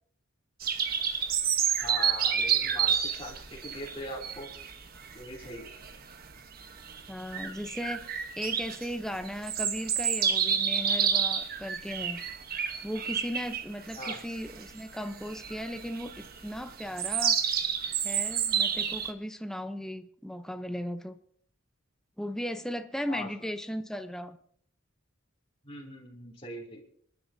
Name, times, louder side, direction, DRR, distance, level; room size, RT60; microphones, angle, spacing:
Birds chirping in spring season, 0.6-19.1, right 8 dB, 45° right, 1.1 m, -30 dB
voice 1, 1.8-4.5 5.1-5.7 14.0-14.2 23.1-23.3 25.6-26.8, left 1 dB, 30° left, -3 dB, 2.9 m, -41 dB
voice 2, 7.1-12.2 12.8-17.4 18.0-21.2 22.2-24.4, equal, 5° left, 8 dB, 0.7 m, -37 dB
25.5 x 11.0 x 2.7 m, 0.62 s
head